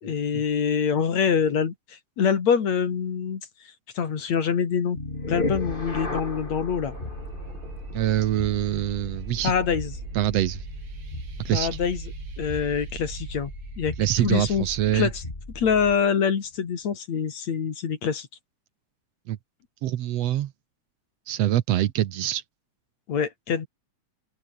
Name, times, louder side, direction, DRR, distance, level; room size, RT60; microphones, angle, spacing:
voice 1, 0.0-3.4 4.0-5.0 5.3-6.9 9.4-9.9 11.5-12.0 12.4-13.5 13.8-13.9 14.2-14.7 14.9-15.2 15.6-18.3 23.1-23.7, left 7 dB, 65° left, 4.0 m, -25 dB
sound 1, 4.9-16.1, left 2 dB, 15° left, 3.6 m, -36 dB
sound 2, 6.9-15.3, right 5 dB, 40° right, 3.2 m, -41 dB
voice 2, 7.9-9.5 10.2-10.6 11.5-11.7 14.0-15.1 19.3-19.4 19.8-20.5 21.3-22.4, right 13 dB, 65° right, 1.9 m, -24 dB
omnidirectional pair, 3.3 m